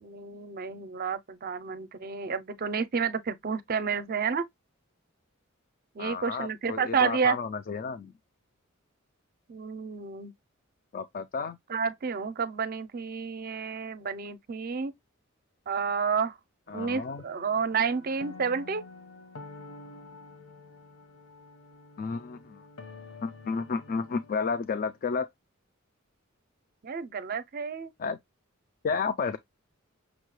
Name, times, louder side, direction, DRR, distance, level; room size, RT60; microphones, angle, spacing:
voice 1, 0.0-4.5 5.9-7.4 9.5-10.3 11.7-14.9 15.7-16.4 16.7-18.8 26.8-27.9, right 6 dB, 45° right, 0.5 m, -30 dB
voice 2, 6.0-8.1 10.9-11.6 16.7-17.2 22.0-22.6 23.2-25.3 28.0-28.2 28.8-29.4, left 5 dB, 45° left, 0.3 m, -32 dB
sound 1, 16.7-25.0, left 3 dB, 75° left, 1.2 m, -49 dB
6.1 x 2.2 x 3.1 m
head